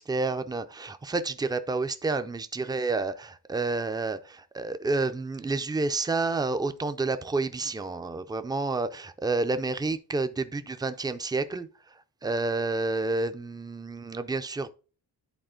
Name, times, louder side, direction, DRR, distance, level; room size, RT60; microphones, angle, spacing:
voice 1, 0.0-11.7 12.2-14.7, right 3 dB, 10° right, 0.4 m, -29 dB
10.5 x 4.2 x 3.7 m
wide cardioid pair, 165°, 43 cm